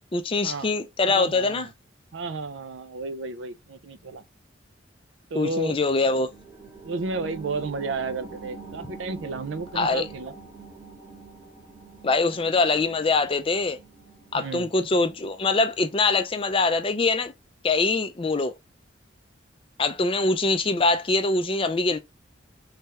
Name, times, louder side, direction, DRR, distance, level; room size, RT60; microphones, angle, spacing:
voice 1, 0.1-1.7 5.3-6.3 9.7-10.0 12.0-13.8 14.3-17.3 17.6-18.5 19.8-22.0, left 3 dB, 25° left, 0.4 m, -23 dB
voice 2, 1.1-1.7 2.1-4.2 5.3-5.8 6.8-10.3 14.3-14.7, right 3 dB, 75° right, 0.5 m, -32 dB
sound 1, 5.8-16.9 17.3-17.4, right 4 dB, 15° right, 1.1 m, -45 dB
3.4 x 3.3 x 2.8 m
head